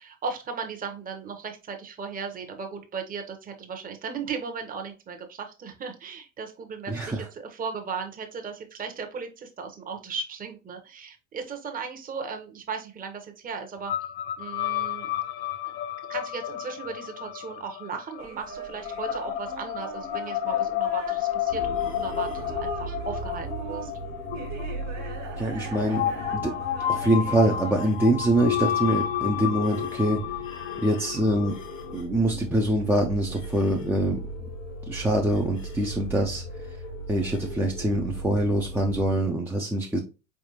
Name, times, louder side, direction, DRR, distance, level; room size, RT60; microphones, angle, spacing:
voice 1, 0.0-13.9 14.4-15.1 15.6-15.7 16.1-23.9, right 5 dB, 20° right, 4 dB, 1.0 m, -36 dB
voice 2, 6.9-7.3 25.4-26.0 26.3-26.5 26.9-30.2 30.8-31.5 31.9-34.2 34.9-36.8 37.1-40.0, right 1 dB, 5° right, -1 dB, 0.6 m, -24 dB
sound 1, 13.9-32.0, left 11 dB, 50° left, 0.7 m, -31 dB
sound 2, 18.2-28.0, right 5 dB, 50° right, 1.6 m, -41 dB
sound 3, 21.5-39.3, right 2 dB, 80° left, 1.4 m, -38 dB
4.6 x 3.6 x 2.8 m, 0.30 s
figure-of-eight pair, 75°, 38 cm